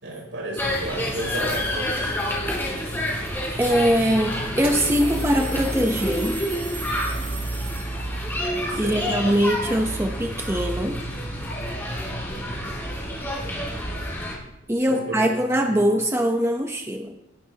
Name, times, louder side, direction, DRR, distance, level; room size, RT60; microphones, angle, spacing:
voice 1, 0.0-2.1 8.7-9.3 14.9-15.3 15.6-15.8, right 1 dB, 75° right, -2 dB, 5.8 m, -33 dB
sound 1, 0.6-14.4, equal, 10° left, 4.7 m, -28 dB
voice 2, 3.6-6.4 8.8-11.0 14.7-17.1, equal, 15° right, 3 dB, 0.9 m, -22 dB
sound 2, 4.6-8.3, right 5 dB, 30° right, 2.5 m, -38 dB
19.0 x 12.5 x 3.0 m, 0.85 s
head